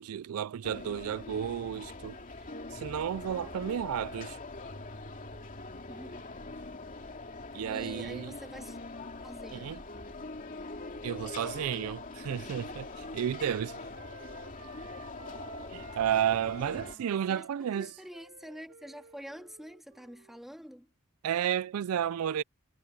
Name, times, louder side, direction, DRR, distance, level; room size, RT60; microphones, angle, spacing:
voice 1, 0.0-2.2 2.7-4.4 7.5-8.3 9.5-9.8 11.0-13.8 15.7-17.9 21.2-22.4, right 9 dB, 85° right, 0.4 m, -32 dB
sound 1, 0.6-17.0, left 3 dB, 40° left, 2.6 m, -43 dB
voice 2, 3.3-3.8 5.9-6.3 7.7-8.8 9.2-9.8 16.7-20.9, equal, ahead, 2.0 m, -47 dB
Wind instrument woodwind instrument, 12.7-16.0 16.4-20.9, right 5 dB, 65° right, 1.8 m, -55 dB
head